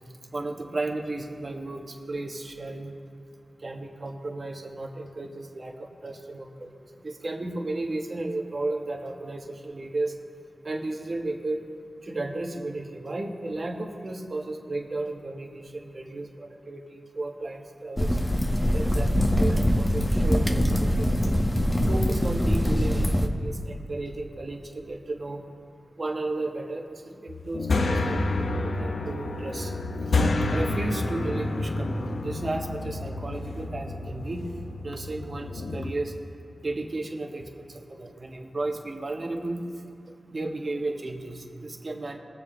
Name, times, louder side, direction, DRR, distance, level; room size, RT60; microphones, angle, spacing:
voice 1, 0.3-2.9 3.6-10.2 10.6-11.6 12.0-18.2 18.7-21.4 21.9-25.4 26.0-34.5 34.8-36.1 36.6-39.6 40.0-42.2, right 2 dB, 55° right, 2 dB, 1.3 m, -34 dB
sound 1, 18.0-23.3, equal, 20° left, 1.1 m, -23 dB
sound 2, 27.3-35.9, left 2 dB, 85° left, 0.7 m, -29 dB
21.0 x 7.6 x 3.4 m, 2.5 s
cardioid pair, 40°, 0 cm